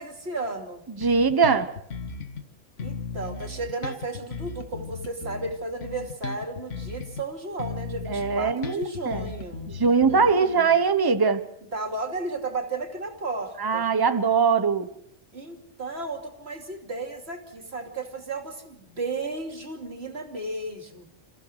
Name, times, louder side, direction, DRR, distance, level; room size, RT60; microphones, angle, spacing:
voice 1, 0.0-0.8 2.8-10.8 11.7-13.9 15.3-21.1, right 3 dB, 55° right, 4 dB, 2.9 m, -34 dB
Bass guitar, 1.0-2.5 2.8-7.3 7.6-10.6, left 4 dB, 70° left, 1.8 m, -36 dB
voice 2, 1.0-1.7 8.1-9.3 9.7-11.4 13.6-14.9, right 5 dB, 20° right, 10 dB, 1.0 m, -22 dB
29.0 x 15.0 x 6.6 m, 0.77 s
omnidirectional pair, 1.3 m